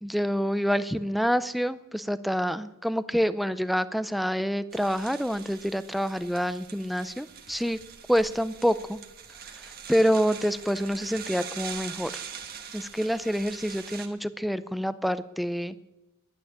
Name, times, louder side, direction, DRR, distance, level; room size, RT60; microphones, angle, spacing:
voice 1, 0.0-7.8 8.1-9.0 9.6-12.1 12.7-15.8, equal, ahead, 14 dB, 0.4 m, -27 dB
sound 1, 4.7-14.1, right 7 dB, 45° right, 1.4 m, -43 dB
11.5 x 8.7 x 9.9 m, 0.99 s
head